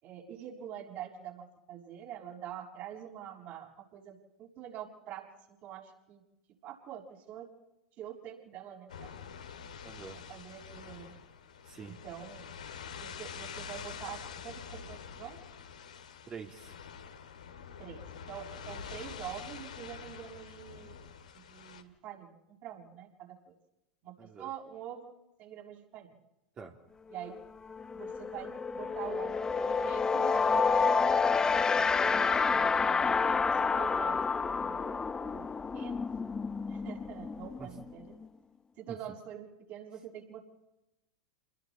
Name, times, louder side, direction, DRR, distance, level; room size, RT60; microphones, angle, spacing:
voice 1, 0.0-5.2 5.6-6.2 6.6-7.5 8.0-9.1 10.3-11.1 12.0-12.4 12.9-15.4 17.8-18.0 18.3-21.0 21.3-22.3 22.6-23.5 24.0-24.1 24.4-25.1 25.4-26.1 27.1-27.4 27.9-35.5 35.7-36.0 36.7-38.1 38.9-40.4, right 10 dB, 50° right, -1 dB, 6.6 m, -45 dB
sound 1, 8.9-21.8, left 7 dB, 80° left, 2.2 m, -46 dB
voice 2, 9.8-10.2 11.6-12.0 16.3-16.8 24.2-24.5 26.6-26.8 37.6-37.8 38.9-39.0, right 6 dB, 30° right, 0 dB, 2.7 m, -46 dB
sound 2, 27.2-27.4 27.7-38.3, left 5 dB, 15° left, 0.8 m, -29 dB
29.5 x 21.5 x 4.3 m, 0.91 s
hypercardioid pair, 95°, 4 cm